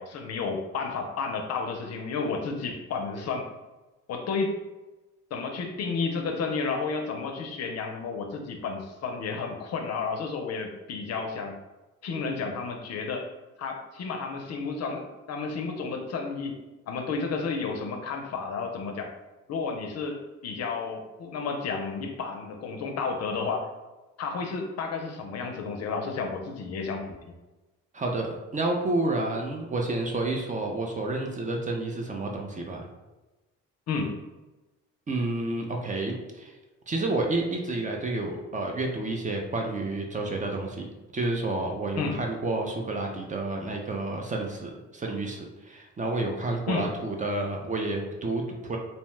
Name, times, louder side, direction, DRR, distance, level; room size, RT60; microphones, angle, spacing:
voice 1, 0.0-3.5 4.1-4.6 5.3-11.6 12.0-13.3 13.6-16.6 16.9-19.1 19.5-23.7 24.2-27.1 33.9-34.2 41.9-42.2 46.7-46.9, left 4 dB, 60° left, 4 dB, 0.5 m, -32 dB
voice 2, 27.9-32.9 35.1-36.5 36.9-48.8, right 2 dB, 25° right, 1 dB, 0.4 m, -30 dB
2.7 x 2.1 x 3.1 m, 1.1 s
cardioid pair, 90°, 30 cm